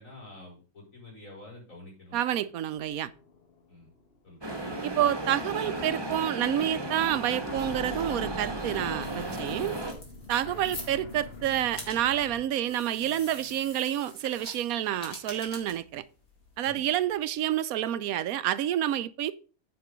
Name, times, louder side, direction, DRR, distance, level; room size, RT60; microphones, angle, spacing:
voice 1, 0.0-2.2 3.7-3.9 4.2-4.4 16.6-16.9, left 2 dB, 65° left, 5.2 m, -48 dB
voice 2, 2.1-3.1 4.8-9.8 10.3-16.0 16.6-19.3, right 11 dB, 80° right, 1.0 m, -28 dB
sound 1, 2.8-12.5, left 2 dB, 45° left, 1.3 m, -46 dB
sound 2, 4.4-9.9, right 1 dB, 20° right, 1.2 m, -35 dB
sound 3, 8.3-17.5, left 2 dB, 80° left, 3.1 m, -47 dB
9.5 x 5.3 x 5.0 m
omnidirectional pair, 1.5 m